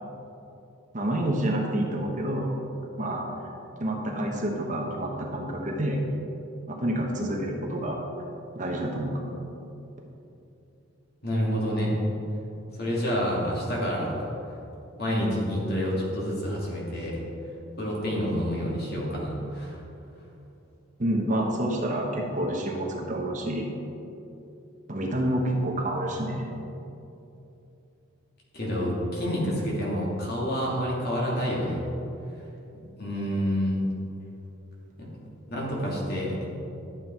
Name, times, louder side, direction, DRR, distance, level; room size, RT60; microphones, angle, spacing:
voice 1, 0.9-2.5 3.0-3.2 3.8-6.0 6.7-8.0 8.5-9.3 21.0-23.7 24.9-26.5, right 1 dB, 40° right, 0 dB, 1.2 m, -28 dB
voice 2, 11.2-12.0 12.8-14.3 15.0-17.2 17.8-19.8 28.5-31.8 33.0-33.8 35.0-35.1 35.5-36.5, equal, 50° left, -4 dB, 2.5 m, -28 dB
12.0 x 7.5 x 4.6 m, 2.8 s
head